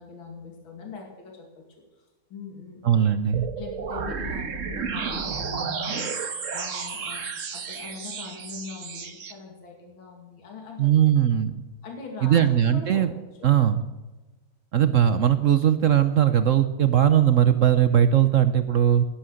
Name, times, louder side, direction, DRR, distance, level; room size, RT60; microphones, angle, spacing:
voice 1, 0.0-2.8 3.6-10.9 11.8-13.1 13.4-13.5, left 4 dB, 70° left, 1 dB, 3.1 m, -42 dB
voice 2, 2.8-3.5 10.8-11.5 12.2-13.1 13.4-13.8 14.7-19.1, right 10 dB, 70° right, 11 dB, 0.7 m, -19 dB
sound 1, 3.3-9.3, right 5 dB, 45° right, 1.4 m, -32 dB
17.0 x 12.0 x 6.4 m, 1.1 s
omnidirectional pair, 2.2 m